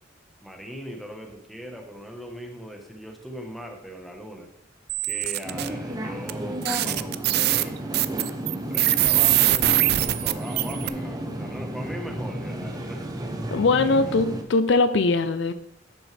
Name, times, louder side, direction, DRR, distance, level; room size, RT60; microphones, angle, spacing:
voice 1, 0.4-4.5 5.0-7.8 8.7-13.1 14.0-14.1, equal, ahead, 2 dB, 1.1 m, -39 dB
sound 1, 4.9-5.7 6.3-6.4 6.6-10.9, right 15 dB, 60° right, 0.3 m, -22 dB
sound 2, 5.4-14.4, right 1 dB, 20° right, 0.8 m, -32 dB
voice 2, 13.5-15.5, left 3 dB, 70° left, 11 dB, 0.5 m, -21 dB
10.5 x 6.2 x 3.3 m, 0.75 s
head